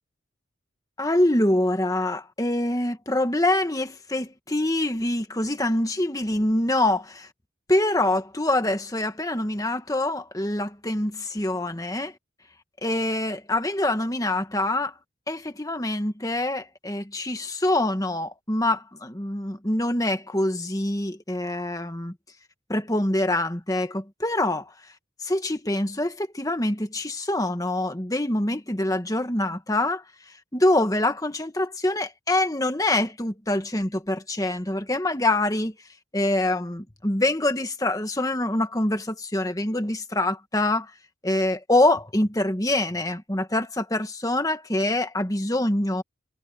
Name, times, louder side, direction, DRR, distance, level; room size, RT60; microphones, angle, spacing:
voice 1, 1.0-7.3 7.7-12.1 12.8-14.9 15.3-22.1 22.7-24.6 25.2-30.0 30.5-35.7 36.1-40.9 41.2-46.0, left 1 dB, 15° left, 1.5 m, -25 dB
head